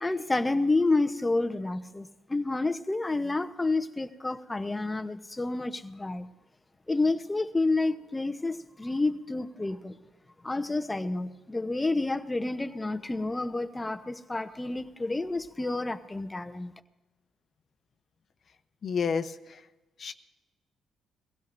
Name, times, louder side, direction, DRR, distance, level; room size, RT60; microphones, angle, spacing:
voice 1, 0.0-6.3 6.9-10.0 10.4-16.7, left 2 dB, 15° left, 0.9 m, -29 dB
voice 2, 18.8-19.6 20.0-20.1, left 6 dB, 50° left, 0.9 m, -30 dB
22.5 x 16.0 x 2.6 m
cardioid pair, 90°, 0 cm